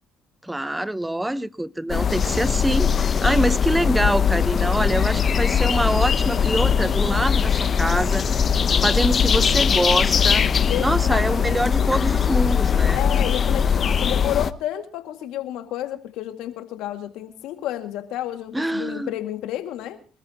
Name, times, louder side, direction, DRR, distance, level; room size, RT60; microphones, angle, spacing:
voice 1, 0.4-8.2 8.8-10.4 10.8-13.0 18.5-19.1, right 1 dB, 10° right, 0.6 m, -25 dB
sound 1, 1.9-14.5, left 7 dB, 45° left, 0.8 m, -20 dB
voice 2, 10.7-11.9 12.9-20.0, left 12 dB, 80° left, 2.0 m, -31 dB
25.0 x 14.0 x 2.9 m
supercardioid pair, 70°, 0 cm